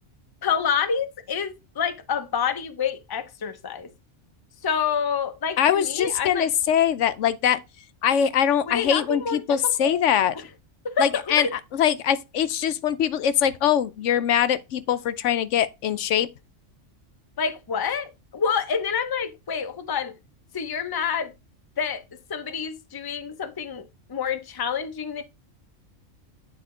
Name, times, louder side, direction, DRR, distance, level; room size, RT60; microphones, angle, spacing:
voice 1, 0.4-3.9 4.6-6.5 8.6-10.0 10.3-10.5 10.8-11.5 17.4-20.1 20.5-21.3 21.8-22.0 22.3-23.8 24.1-25.2, left 6 dB, 25° left, 0.6 m, -28 dB
voice 2, 5.6-7.6 8.0-10.3 11.0-11.5 11.7-16.3, left 9 dB, 75° left, 0.9 m, -22 dB
9.5 x 4.3 x 3.7 m
omnidirectional pair, 1.3 m